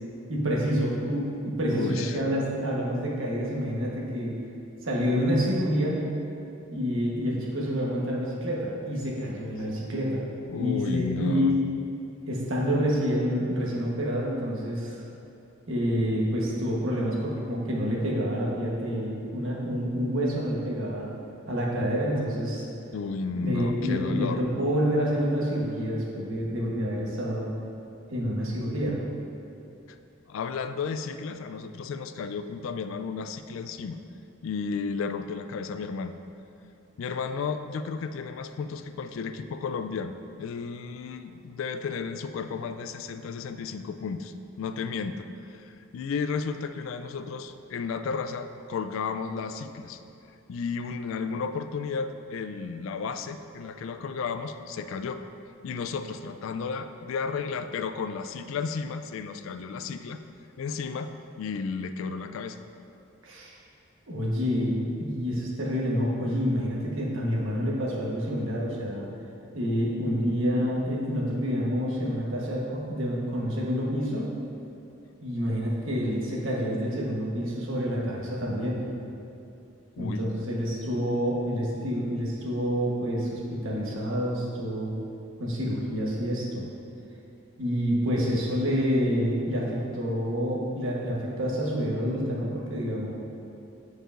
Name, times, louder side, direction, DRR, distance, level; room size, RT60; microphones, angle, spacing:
voice 1, 0.3-4.3 4.8-6.1 6.7-10.2 10.5-11.6 12.3-15.0 15.7-21.1 21.5-22.6 23.3-27.5 28.1-29.0 63.2-63.5 64.1-69.1 69.5-74.3 75.2-78.9 80.0-84.9 85.4-86.6 87.6-93.1, equal, 80° right, -4 dB, 1.2 m, -28 dB
voice 2, 1.7-2.2 10.5-11.5 22.9-24.5 29.9-30.0 30.3-34.0 34.4-36.1 37.0-50.0 50.5-55.2 55.6-60.2 60.6-61.1 61.4-62.6 80.0-80.2, left 5 dB, 80° left, 9 dB, 0.3 m, -33 dB
9.0 x 4.7 x 2.5 m, 2.7 s
head